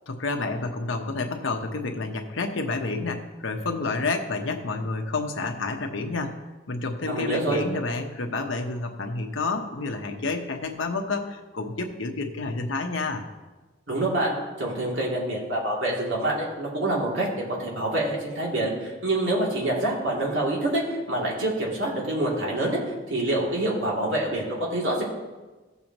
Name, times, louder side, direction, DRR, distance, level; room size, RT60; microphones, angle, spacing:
voice 1, 0.1-6.4 6.7-13.2, left 3 dB, 90° left, 3 dB, 1.0 m, -29 dB
voice 2, 7.1-7.6 13.9-22.8 23.1-25.0, right 1 dB, 75° right, -4 dB, 2.8 m, -26 dB
16.0 x 7.0 x 3.0 m, 1.2 s
head